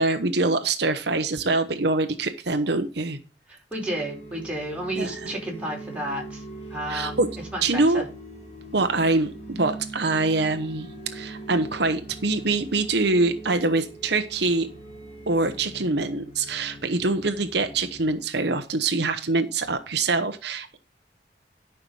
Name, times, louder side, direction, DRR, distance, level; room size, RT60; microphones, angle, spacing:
voice 1, 0.0-3.2 5.0-5.3 6.9-7.3 7.6-8.0 8.7-14.7 15.3-20.8, right 3 dB, 65° right, 8 dB, 1.0 m, -24 dB
voice 2, 3.5-6.4 6.7-7.2 7.5-8.0, right 1 dB, 5° right, -2 dB, 4.7 m, -32 dB
sound 1, 3.7-18.1, right 2 dB, 40° left, 3.3 m, -41 dB
12.0 x 5.9 x 5.5 m, 0.32 s
head